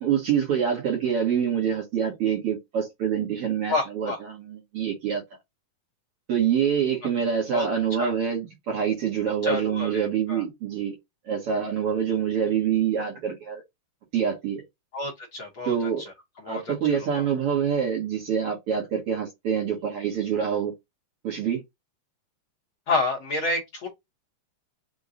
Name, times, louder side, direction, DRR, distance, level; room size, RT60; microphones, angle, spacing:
voice 1, 0.0-5.2 6.3-11.0 11.3-13.6 14.1-14.6 15.7-16.0 16.5-20.7 21.2-21.6, right 8 dB, 60° right, 1.8 m, -26 dB
voice 2, 3.7-4.2 7.5-7.7 8.0-8.1 9.4-10.4 14.9-15.9 16.4-17.2 22.9-23.9, left 2 dB, 60° left, 1.5 m, -29 dB
5.3 x 2.2 x 3.7 m
omnidirectional pair, 3.4 m